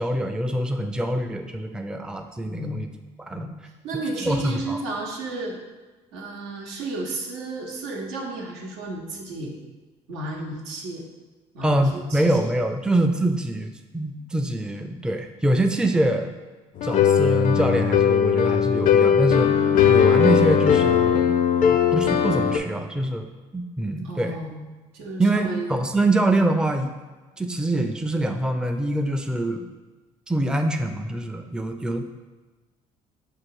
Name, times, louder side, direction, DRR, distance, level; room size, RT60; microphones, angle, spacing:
voice 1, 0.0-2.9 3.2-3.5 4.2-4.8 11.6-16.3 16.8-21.4 21.7-24.4 25.2-26.9 27.4-29.7 30.3-32.0, right 1 dB, 5° right, 5 dB, 0.4 m, -24 dB
voice 2, 2.4-2.9 3.3-3.5 3.8-5.6 6.1-9.6 10.1-11.0 11.5-12.5 24.0-24.7 24.9-25.7, right 2 dB, 90° right, 0 dB, 0.8 m, -33 dB
sound 1, 16.8-22.6, left 8 dB, 55° left, 0.4 m, -19 dB
4.6 x 2.3 x 4.7 m, 1.2 s
supercardioid pair, 70°, 16 cm